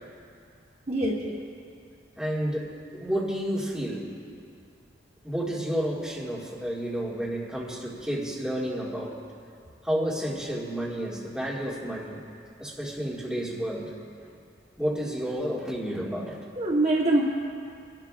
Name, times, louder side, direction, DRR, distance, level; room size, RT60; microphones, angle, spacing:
voice 1, 0.9-1.3 16.6-17.2, right 2 dB, 40° right, -2 dB, 1.1 m, -24 dB
voice 2, 2.2-4.1 5.2-9.2 9.8-12.2 12.6-13.9 14.2-14.4 14.8-16.4, equal, 5° right, -6 dB, 1.9 m, -31 dB
29.0 x 12.0 x 2.5 m, 2.4 s
head